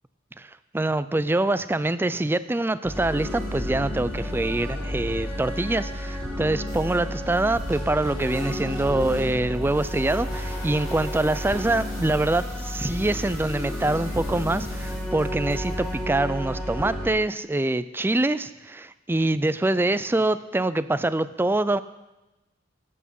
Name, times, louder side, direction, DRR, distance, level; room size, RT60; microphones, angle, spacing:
voice 1, 0.4-21.8, right 2 dB, 10° right, 14 dB, 0.3 m, -25 dB
sound 1, 2.8-17.1, equal, 5° left, 2.9 m, -31 dB
sound 2, 3.9-5.2 5.7-16.0, left 2 dB, 45° left, 5.3 m, -46 dB
14.0 x 8.6 x 5.4 m, 1.0 s
head